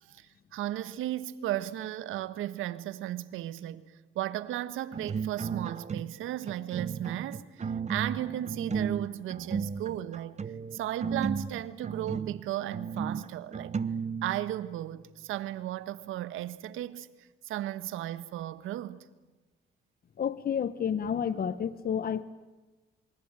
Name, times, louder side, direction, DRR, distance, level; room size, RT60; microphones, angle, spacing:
voice 1, 0.0-3.8 4.1-10.4 10.7-13.7 14.2-19.0, right 13 dB, 90° right, 1.5 m, -35 dB
sound 1, 4.9-6.2 6.5-14.6, right 6 dB, 35° right, 1.1 m, -34 dB
voice 2, 20.2-22.2, left 8 dB, 50° left, 1.1 m, -30 dB
27.5 x 24.0 x 9.0 m
cardioid pair, 90°, 20 cm